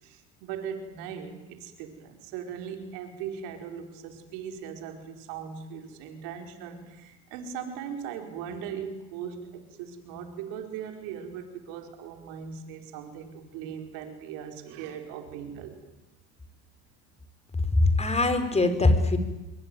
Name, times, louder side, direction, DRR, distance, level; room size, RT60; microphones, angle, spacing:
voice 1, 0.0-15.9, right 7 dB, 75° right, 5 dB, 5.0 m, -39 dB
voice 2, 17.6-19.2, left 2 dB, 20° left, 9 dB, 4.9 m, -22 dB
25.0 x 24.0 x 9.4 m, 1.0 s
supercardioid pair, 85°, 35 cm